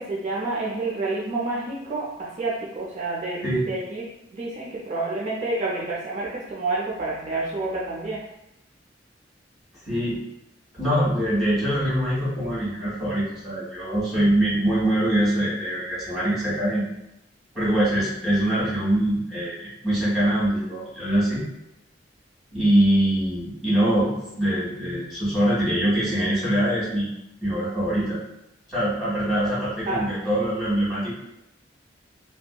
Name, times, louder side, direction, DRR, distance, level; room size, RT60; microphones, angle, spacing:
voice 1, 0.0-3.4 3.7-4.0 4.3-8.2 29.9-30.0, right 2 dB, 40° right, -5 dB, 0.4 m, -28 dB
voice 2, 9.9-10.2 10.7-16.8 17.5-21.4 22.5-27.1 27.4-28.2 28.7-31.1, right 1 dB, ahead, -9 dB, 1.3 m, -23 dB
2.6 x 2.2 x 2.2 m, 0.85 s
head